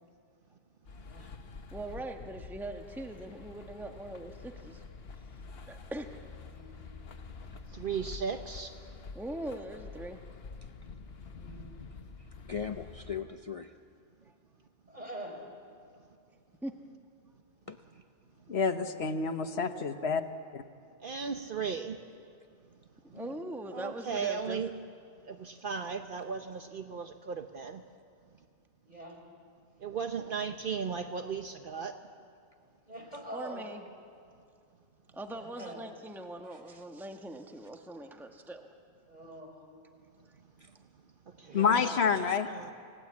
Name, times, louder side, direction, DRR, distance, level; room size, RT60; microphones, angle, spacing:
sound 1, 0.8-13.2, left 4 dB, 70° left, 1.3 m, -47 dB
voice 1, 1.0-1.3 6.5-6.8 11.3-11.8 14.9-15.4 23.0-23.4 28.9-29.2 32.9-33.6 35.3-35.8 39.1-39.6 41.4-41.9, right 1 dB, 40° right, 0 dB, 5.1 m, -45 dB
voice 2, 1.7-4.8 5.7-6.2 9.1-10.2 16.6-16.7 23.1-24.6 33.3-33.8 35.1-38.7, right 1 dB, ahead, 4 dB, 1.2 m, -41 dB
voice 3, 7.7-8.7 21.0-22.0 23.7-24.7 25.3-27.8 29.8-31.9 41.4-41.7 42.1-42.7, right 6 dB, 60° right, 7 dB, 1.0 m, -36 dB
voice 4, 12.2-13.8 17.7-18.0 35.6-35.7 36.5-36.8 40.6-40.7, left 7 dB, 40° left, 7 dB, 0.6 m, -41 dB
voice 5, 18.5-20.2 20.5-20.6 41.5-42.5, left 5 dB, 90° left, 8 dB, 1.4 m, -28 dB
28.5 x 18.0 x 8.5 m, 2.4 s
omnidirectional pair, 1.1 m